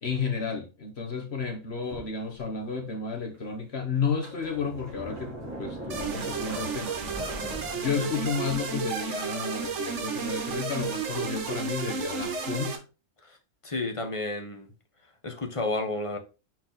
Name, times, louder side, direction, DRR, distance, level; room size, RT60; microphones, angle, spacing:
voice 1, 0.0-7.3 7.8-12.8, left 5 dB, 55° left, 1.4 m, -32 dB
Sliding door, 1.9-2.8 3.3-3.4 4.0-8.8, right 1 dB, 10° right, 2.7 m, -40 dB
sound 1, 5.9-12.8, right 5 dB, 70° right, 1.4 m, -32 dB
voice 2, 13.6-14.7 15.2-16.2, left 2 dB, 25° left, 1.1 m, -31 dB
6.1 x 4.4 x 4.0 m
omnidirectional pair, 1.3 m